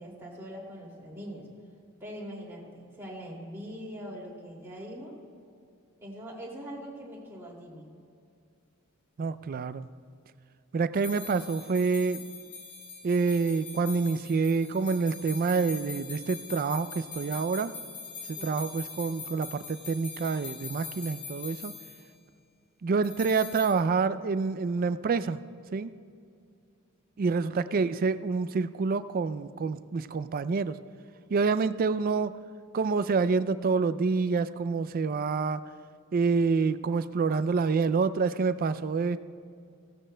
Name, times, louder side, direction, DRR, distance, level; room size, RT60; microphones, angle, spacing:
voice 1, 0.0-1.5 2.0-5.2 6.0-7.9 18.4-18.6 27.4-27.8, equal, 10° right, -4 dB, 2.4 m, -42 dB
voice 2, 9.2-9.9 10.7-12.2 13.0-17.7 18.3-21.7 22.8-25.4 25.7-25.9 27.2-30.8 31.3-32.3 32.7-35.6 36.1-39.2, right 4 dB, 40° right, 14 dB, 0.3 m, -27 dB
sound 1, 10.9-22.0 23.0-23.7, left 5 dB, 55° left, 2.9 m, -43 dB
17.0 x 13.5 x 2.2 m, 2.4 s
head